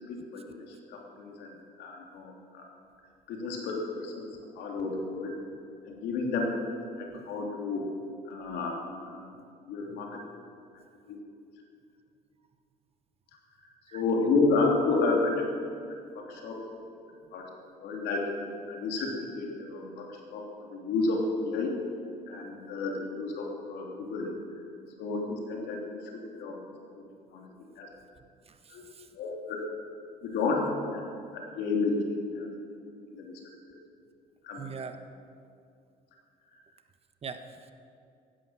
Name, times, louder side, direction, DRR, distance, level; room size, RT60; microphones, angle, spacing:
voice 1, 0.1-2.7 3.3-4.3 4.5-5.3 5.8-6.5 7.0-7.8 8.3-8.8 9.1-9.3 9.7-10.2 11.1-11.2 13.6-15.7 16.1-16.6 17.3-17.5 17.8-21.7 22.3-24.3 25.0-26.6 26.9-27.0 27.3-27.9 28.7-28.8 29.1-29.6 30.2-31.0 31.3-32.6 33.1-33.4 34.4-34.7 36.5-36.6, left 3 dB, 80° left, 0 dB, 3.3 m, -31 dB
voice 2, 28.4-29.1 34.6-35.0 37.2-37.7, right 5 dB, 35° right, 8 dB, 1.2 m, -42 dB
15.5 x 11.5 x 7.6 m, 2.4 s
cardioid pair, 110°, 17 cm